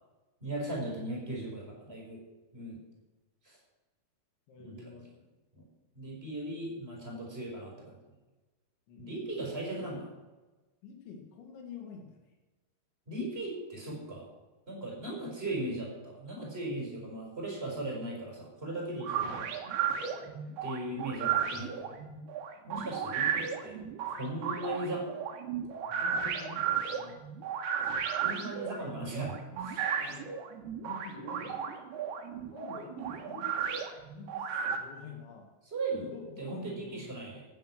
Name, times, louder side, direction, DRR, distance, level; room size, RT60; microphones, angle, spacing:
voice 1, 0.4-2.2 2.5-2.8 3.4-3.6 4.6-5.0 5.5-5.6 5.9-7.9 9.0-10.1 13.1-14.3 14.7-19.5 20.6-22.0 22.7-23.8 24.1-25.1 28.2-29.4 29.6-29.9 32.6-33.0 35.7-37.4, right 1 dB, 15° right, -2 dB, 5.4 m, -38 dB
voice 2, 4.5-5.1 8.9-9.2 10.8-12.2 19.0-19.5 20.1-20.5 25.9-27.2 30.0-30.3 30.8-31.7 32.5-33.6 34.1-35.5 36.1-37.1, left 5 dB, 85° left, 3 dB, 4.7 m, -48 dB
sound 1, 19.0-34.8, right 8 dB, 70° right, 3.2 m, -34 dB
15.0 x 10.0 x 6.3 m, 1.1 s
omnidirectional pair, 5.1 m